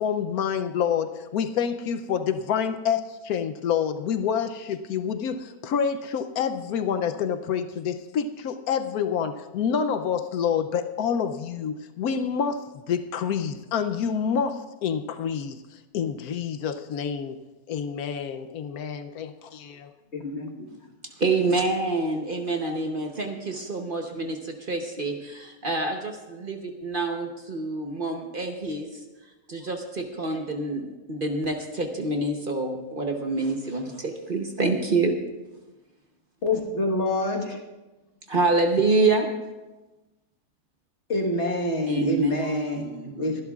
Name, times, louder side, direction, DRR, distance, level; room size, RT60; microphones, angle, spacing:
voice 1, 0.0-15.6 15.9-17.4 17.7-19.9, left 7 dB, 80° left, 9 dB, 1.1 m, -27 dB
voice 2, 20.1-20.7 36.4-37.6 41.1-43.4, left 2 dB, 50° left, 0 dB, 1.7 m, -26 dB
voice 3, 21.2-28.9 29.5-35.1 38.3-39.3 41.9-43.4, right 3 dB, 40° right, 3 dB, 1.0 m, -27 dB
22.5 x 11.0 x 2.4 m, 1.1 s
omnidirectional pair, 1.6 m